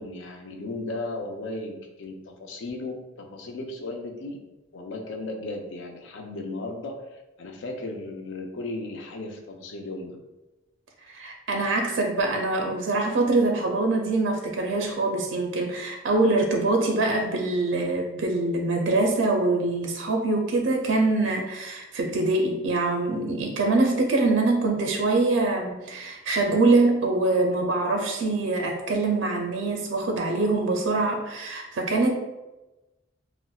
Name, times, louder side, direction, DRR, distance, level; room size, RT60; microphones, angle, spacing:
voice 1, 0.0-4.4 4.7-7.1 7.4-10.2, left 2 dB, 70° left, 3 dB, 0.5 m, -35 dB
voice 2, 11.1-32.2, right 2 dB, 80° right, 2 dB, 0.4 m, -24 dB
4.0 x 2.0 x 2.3 m, 1.0 s
head